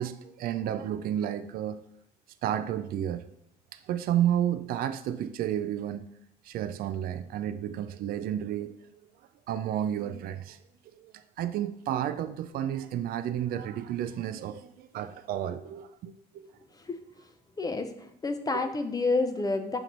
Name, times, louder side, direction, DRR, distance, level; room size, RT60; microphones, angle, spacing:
voice 1, 0.0-1.8 2.4-3.3 3.7-6.1 6.4-9.0 9.5-10.6 11.0-16.5 17.6-17.7 18.5-18.6, right 10 dB, 60° right, 10 dB, 0.4 m, -31 dB
voice 2, 17.6-17.9 18.2-19.8, left 3 dB, 20° left, 8 dB, 0.6 m, -28 dB
6.0 x 4.5 x 3.9 m, 0.73 s
cardioid pair, 110°, 17 cm